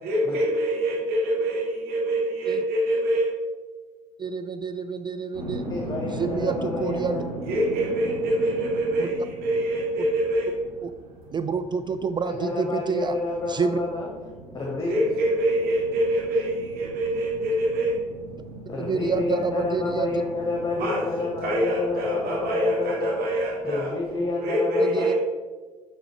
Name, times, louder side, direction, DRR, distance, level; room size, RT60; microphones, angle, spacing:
voice 1, 0.0-3.3 7.4-10.5 14.9-18.0 20.8-23.9 24.4-25.1, right 1 dB, 60° right, -3 dB, 1.4 m, -25 dB
voice 2, 4.2-5.7 6.1-7.2 9.0-9.1 10.0-10.1 10.8-10.9 11.3-13.2 13.5-13.8 18.8-20.1 24.8-25.1, right 5 dB, 25° right, 9 dB, 0.3 m, -28 dB
sound 1, 5.3-24.3, right 2 dB, 80° right, 1.1 m, -40 dB
voice 3, 5.7-7.2 12.2-14.1 14.5-15.0 18.7-23.1 23.6-25.1, left 3 dB, 20° left, -1 dB, 1.3 m, -29 dB
6.8 x 4.0 x 5.5 m, 1.4 s
figure-of-eight pair, 45°, 19 cm